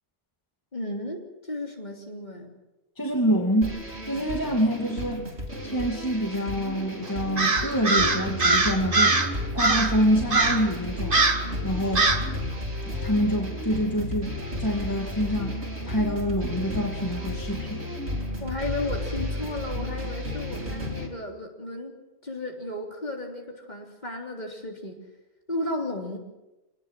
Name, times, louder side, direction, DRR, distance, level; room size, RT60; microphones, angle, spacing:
voice 1, 0.7-2.5 18.4-21.9 22.2-25.0 25.5-26.2, left 2 dB, 40° left, 1 dB, 3.7 m, -34 dB
voice 2, 3.0-5.3 5.6-9.2 9.5-11.2 11.6-12.1 12.9-14.3 14.6-15.6 15.8-17.9, equal, 20° left, 1 dB, 2.6 m, -26 dB
sound 1, 3.6-21.1, left 1 dB, 80° right, 4.0 m, -33 dB
Crow, 7.4-9.3 9.6-10.0 10.3-10.7 11.1-11.5 12.0-12.3, right 3 dB, 55° right, 2.0 m, -22 dB
26.5 x 19.0 x 7.7 m, 1.0 s
omnidirectional pair, 1.1 m